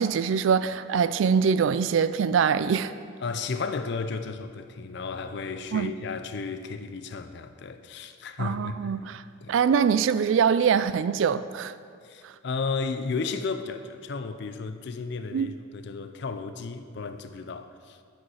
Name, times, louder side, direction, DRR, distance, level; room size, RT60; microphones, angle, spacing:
voice 1, 0.0-2.9 5.7-5.9 8.4-9.2 9.5-11.7 15.3-15.5, right 6 dB, 70° right, 0.3 m, -23 dB
voice 2, 3.2-8.9 9.4-9.6 12.0-18.0, left 4 dB, 55° left, 0.4 m, -33 dB
8.8 x 5.4 x 5.6 m
head